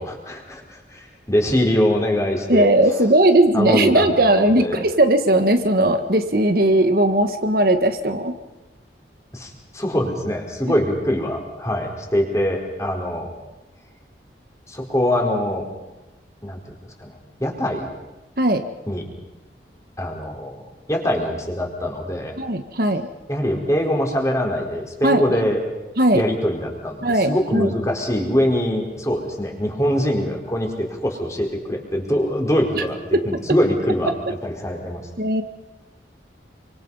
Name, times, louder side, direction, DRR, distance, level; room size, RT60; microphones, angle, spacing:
voice 1, 0.0-3.0 3.5-4.8 9.3-13.3 14.7-15.7 16.4-17.1 17.4-17.9 18.9-19.0 20.0-22.4 23.3-25.6 26.1-35.1, equal, 15° left, 1 dB, 4.4 m, -23 dB
voice 2, 2.5-8.4 18.4-18.6 22.4-23.1 25.0-25.2 26.0-26.2 27.0-27.7 32.7-32.8 33.1-33.4 35.2-35.4, right 1 dB, 55° right, 7 dB, 1.7 m, -18 dB
28.0 x 25.5 x 5.6 m, 1.1 s
head